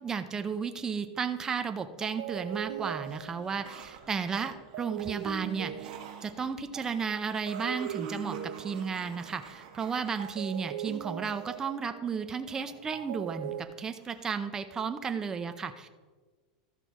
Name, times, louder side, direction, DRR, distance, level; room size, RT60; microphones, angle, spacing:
voice 1, 0.0-6.0 6.2-15.9, right 6 dB, 15° right, 9 dB, 0.6 m, -33 dB
sound 1, 1.6-1.7 2.0-7.0 7.5-9.7 10.2-13.6, right 11 dB, 75° right, 0.7 m, -40 dB
sound 2, 2.0-2.6 2.9-11.6 12.5-13.6 14.0-14.4, right 7 dB, 60° right, 1.6 m, -51 dB
13.5 x 5.8 x 4.6 m, 1.4 s
supercardioid pair, 155°, 4 cm